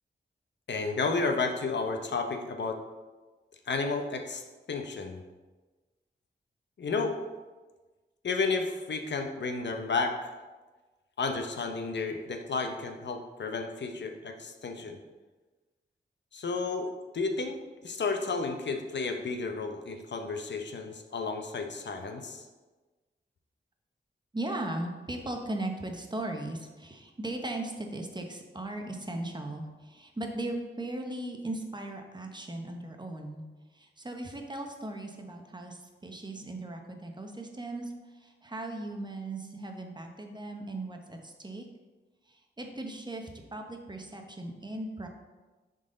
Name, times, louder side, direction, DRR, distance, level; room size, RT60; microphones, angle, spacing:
voice 1, 0.7-2.8 3.7-4.4 4.7-5.2 6.8-7.2 8.2-10.3 11.2-15.0 16.3-17.6 17.8-22.4, left 4 dB, 70° left, 4 dB, 0.8 m, -32 dB
voice 2, 24.3-33.4 33.7-41.7 42.3-45.1, right 2 dB, 25° right, 3 dB, 0.9 m, -38 dB
10.5 x 4.0 x 3.8 m, 1.3 s
wide cardioid pair, 110°, 19 cm